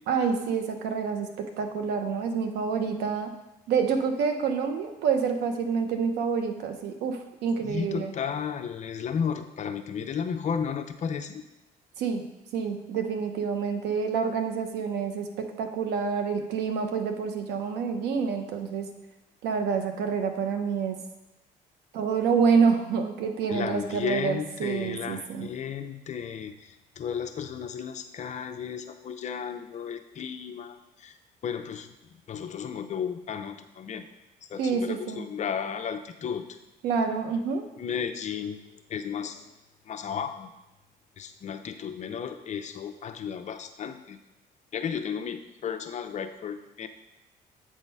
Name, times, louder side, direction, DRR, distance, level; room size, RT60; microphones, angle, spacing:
voice 1, 0.1-3.3 3.7-8.1 12.0-12.2 12.5-18.9 19.4-21.0 21.9-25.5 34.6-35.2 36.8-37.7, right 6 dB, 85° right, 6 dB, 0.9 m, -27 dB
voice 2, 7.6-11.4 23.5-31.1 31.4-31.9 32.3-34.1 34.4-36.5 37.8-38.6 38.9-39.5 39.9-40.5 41.2-44.2 44.7-46.9, left 7 dB, 45° left, 8 dB, 0.6 m, -34 dB
8.1 x 3.7 x 5.4 m, 1.0 s
cardioid pair, 110°, 17 cm